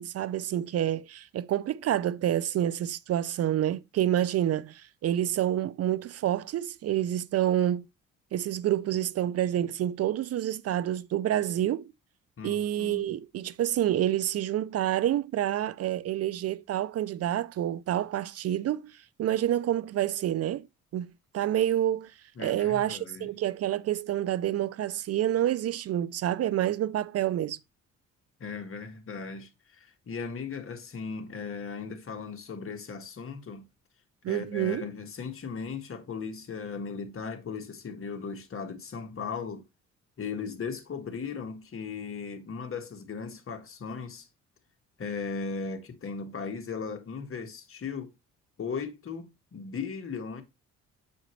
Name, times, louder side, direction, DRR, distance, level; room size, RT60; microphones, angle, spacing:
voice 1, 0.0-7.9 8.3-11.9 12.4-20.7 20.9-22.1 22.4-27.6 34.2-34.9, right 12 dB, 55° right, 0.4 m, -28 dB
voice 2, 12.4-13.1 22.4-23.3 28.4-33.6 34.3-39.6 40.2-44.3 45.0-48.1 48.6-50.4, left 5 dB, 45° left, 1.6 m, -37 dB
7.8 x 5.1 x 3.1 m
cardioid pair, 90°, 30 cm